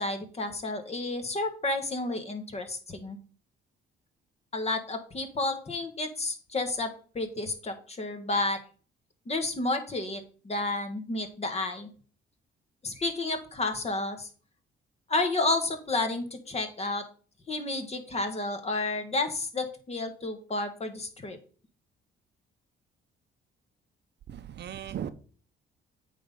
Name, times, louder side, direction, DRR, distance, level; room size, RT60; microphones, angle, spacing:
voice 1, 0.0-3.2 4.5-8.6 9.2-11.9 12.8-14.3 15.1-17.1 17.5-21.4, left 2 dB, 30° left, 1.6 m, -31 dB
voice 2, 24.3-25.1, right 9 dB, 60° right, 0.7 m, -37 dB
8.5 x 3.8 x 5.5 m
cardioid pair, 90°, 20 cm